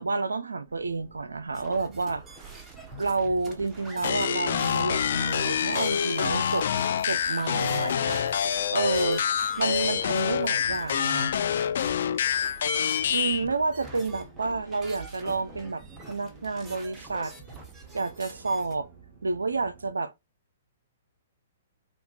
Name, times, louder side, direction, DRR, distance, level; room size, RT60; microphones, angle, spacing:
voice 1, 0.0-2.2 3.0-6.7 7.0-8.2 8.7-9.2 9.6-11.4 13.1-17.3 17.9-18.9 19.2-20.1, right 3 dB, 80° right, 0.4 m, -29 dB
sound 1, 0.6-19.9, right 6 dB, 40° right, 1.9 m, -52 dB
sound 2, 1.5-18.7, right 2 dB, 15° right, 1.0 m, -46 dB
sound 3, 4.0-13.5, left 8 dB, 60° left, 0.4 m, -26 dB
5.6 x 2.3 x 2.3 m
figure-of-eight pair, 120°, 0 cm